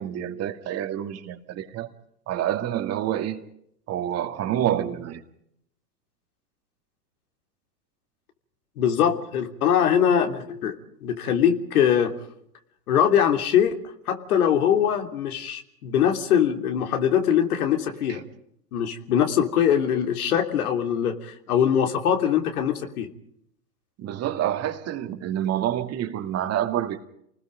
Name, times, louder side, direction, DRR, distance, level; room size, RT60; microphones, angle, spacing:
voice 1, 0.0-1.9 2.3-3.4 3.9-5.2 24.0-27.0, right 11 dB, 30° right, 6 dB, 2.4 m, -27 dB
voice 2, 8.8-12.1 12.9-18.2 18.7-23.1, left 9 dB, 65° left, 5 dB, 3.3 m, -22 dB
29.5 x 20.0 x 5.3 m, 0.72 s
hypercardioid pair, 110°, 48 cm